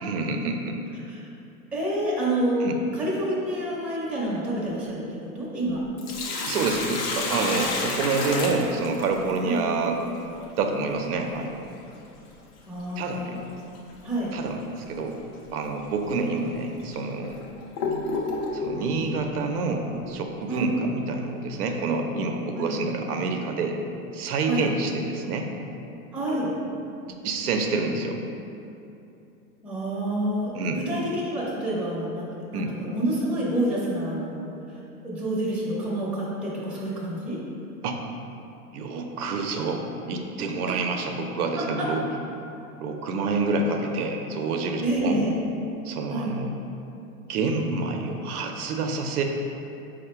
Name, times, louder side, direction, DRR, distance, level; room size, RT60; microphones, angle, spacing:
voice 1, 0.0-0.8 2.6-2.8 6.5-10.0 10.6-11.6 13.0-13.4 14.3-14.6 14.9-15.2 15.5-17.4 18.5-23.8 24.1-25.5 27.2-28.2 30.5-30.8 32.5-32.7 37.8-38.0 38.7-42.0 42.8-45.2 45.8-46.5 47.3-49.2, right 3 dB, 75° right, 3 dB, 0.6 m, -27 dB
voice 2, 1.7-5.8 9.4-9.7 12.7-13.4 14.0-14.3 20.5-20.7 22.5-22.7 24.5-24.6 26.1-26.5 29.6-37.4 41.6-41.9 44.8-45.4 46.1-46.3, right 1 dB, 5° right, -8 dB, 0.6 m, -28 dB
Sink (filling or washing), 5.8-9.4 11.8-11.9 13.7-14.0 14.4-14.5 15.3-15.5 16.2-16.3 16.9-18.8, left 3 dB, 40° left, 0.6 m, -29 dB
4.5 x 2.2 x 4.3 m, 2.7 s
hypercardioid pair, 115°, 45 cm